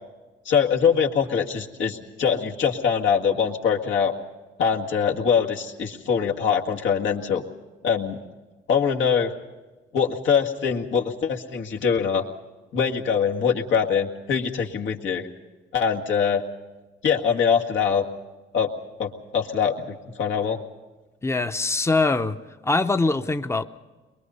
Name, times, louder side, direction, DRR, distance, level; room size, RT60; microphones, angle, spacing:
voice 1, 0.5-4.1 4.6-7.4 7.8-8.2 8.7-9.3 9.9-12.2 12.7-15.3 15.7-16.4 17.0-18.0 18.5-18.7 19.0-20.6, left 7 dB, 75° left, 1 dB, 1.9 m, -23 dB
voice 2, 21.2-22.4 22.6-23.6, left 3 dB, 15° left, 9 dB, 0.8 m, -23 dB
23.0 x 22.0 x 5.6 m, 1.2 s
cardioid pair, 90°, 20 cm